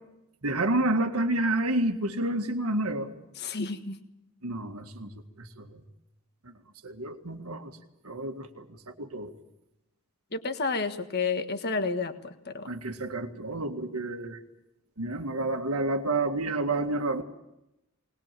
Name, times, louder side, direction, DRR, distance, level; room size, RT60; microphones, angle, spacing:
voice 1, 0.4-3.1 4.4-5.8 6.8-7.8 8.0-9.3 12.7-14.4 15.0-17.2, right 2 dB, 90° right, 5 dB, 1.8 m, -29 dB
voice 2, 3.4-4.0 10.3-12.7, left 4 dB, 50° left, 8 dB, 1.4 m, -30 dB
21.5 x 20.0 x 7.6 m, 0.88 s
head